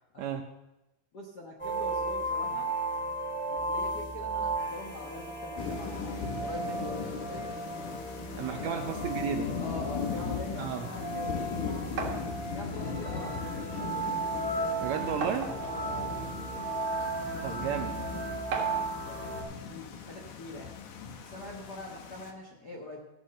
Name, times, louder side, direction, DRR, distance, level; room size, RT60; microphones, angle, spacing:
voice 1, 1.1-2.7 3.5-7.4 8.5-9.1 9.6-12.1 12.5-14.1 15.6-16.3 17.0-18.4 18.7-20.7 21.2-23.0, left 2 dB, 55° left, -1 dB, 1.1 m, -44 dB
sound 1, 1.6-19.4, right 2 dB, 5° left, 2.4 m, -35 dB
Thunder / Rain, 5.6-22.3, left 6 dB, 70° left, 2.6 m, -39 dB
voice 2, 8.4-9.5 10.6-10.9 14.8-15.5 17.4-18.0, right 7 dB, 75° right, 6 dB, 1.7 m, -33 dB
sound 2, 12.0-12.3 13.4-13.5 13.9-14.0 15.2-15.8 16.7-16.8 18.5-18.9, right 4 dB, 60° right, 2.8 m, -34 dB
16.0 x 6.4 x 6.4 m, 0.97 s
omnidirectional pair, 3.7 m